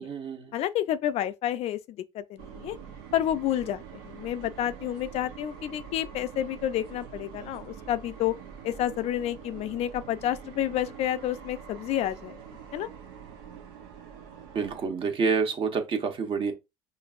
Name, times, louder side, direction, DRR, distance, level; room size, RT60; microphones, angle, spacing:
voice 1, 0.0-0.5 14.5-16.5, right 5 dB, 45° right, 1.0 m, -28 dB
voice 2, 0.5-2.8 3.1-8.3 8.6-12.4 12.7-12.9, left 11 dB, 60° left, 0.4 m, -30 dB
sound 1, 2.4-14.9, right 7 dB, 80° right, 0.8 m, -45 dB
5.1 x 2.5 x 2.4 m
supercardioid pair, 80°, 12 cm